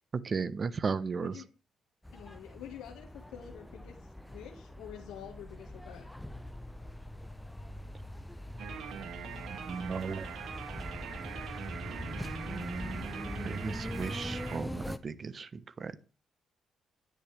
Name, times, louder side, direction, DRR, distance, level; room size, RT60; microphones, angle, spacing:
voice 1, 0.2-1.3 9.5-10.3 13.4-16.1, right 5 dB, 40° right, 15 dB, 0.8 m, -35 dB
voice 2, 1.1-1.5 2.1-6.1, left 9 dB, 90° left, 2 dB, 1.6 m, -48 dB
sound 1, 2.0-15.0, left 1 dB, 5° left, 0.7 m, -42 dB
sound 2, 8.6-14.6, right 7 dB, 75° right, 1.3 m, -42 dB
10.0 x 10.0 x 3.3 m, 0.34 s
cardioid pair, 90°, 0 cm